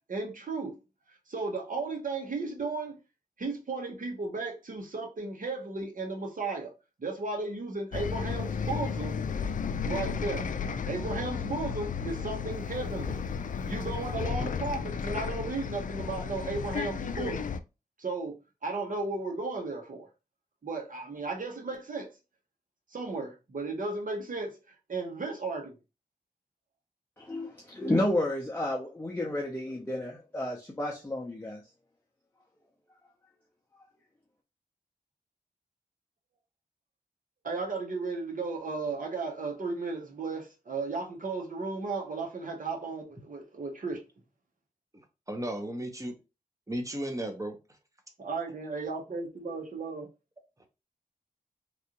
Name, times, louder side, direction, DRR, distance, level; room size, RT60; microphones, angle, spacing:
voice 1, 0.1-0.8 1.3-3.0 3.4-6.7 7.0-9.2 9.8-10.5 10.9-13.2 13.6-17.5 18.0-18.3 18.6-20.1 20.6-22.1 22.9-24.6 24.9-25.8 37.4-44.0 48.2-50.0, right 3 dB, 60° right, 1.1 m, -35 dB
Bus, 7.9-17.6, left 6 dB, 60° left, 0.4 m, -33 dB
voice 2, 27.2-31.6, left 1 dB, 10° left, 0.8 m, -31 dB
voice 3, 45.3-46.1 46.7-47.6, right 1 dB, 20° right, 1.0 m, -34 dB
3.3 x 2.5 x 2.9 m
cardioid pair, 55°, 16 cm